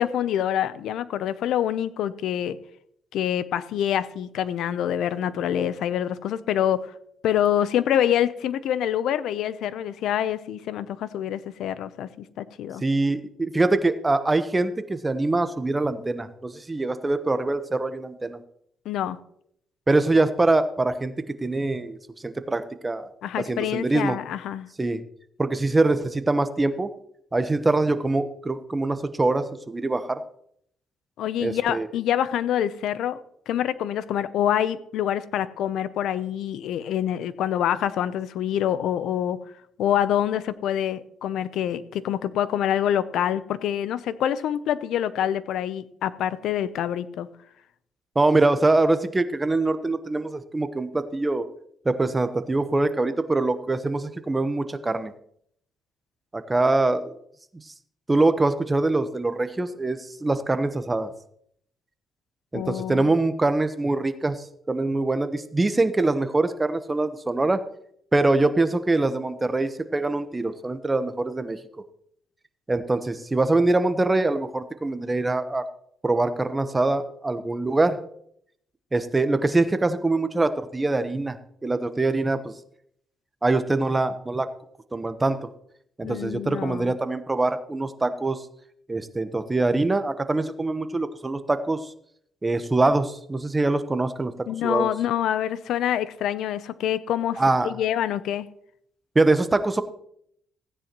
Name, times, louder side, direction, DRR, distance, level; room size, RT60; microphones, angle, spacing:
voice 1, 0.0-2.6 3.1-6.9 7.2-12.8 18.9-19.2 23.2-24.7 31.2-33.2 33.5-39.4 39.8-47.3 62.5-63.1 86.0-86.9 94.5-98.5, left 10 dB, 80° left, 15 dB, 0.7 m, -26 dB
voice 2, 12.8-18.4 19.9-21.1 21.4-22.0 22.2-23.1 23.5-24.2 24.8-25.0 25.4-26.9 27.3-30.2 31.4-31.9 48.1-51.5 51.8-55.1 56.3-57.1 58.1-61.1 62.5-67.6 68.1-71.6 72.7-75.7 76.0-78.0 78.9-81.4 81.6-82.5 83.4-84.5 84.9-85.4 86.0-88.4 88.9-91.9 92.4-94.3 94.6-94.9 97.4-97.7 99.1-99.8, right 2 dB, 20° right, 10 dB, 1.0 m, -23 dB
16.0 x 9.7 x 3.1 m, 0.70 s
cardioid pair, 90°, 0 cm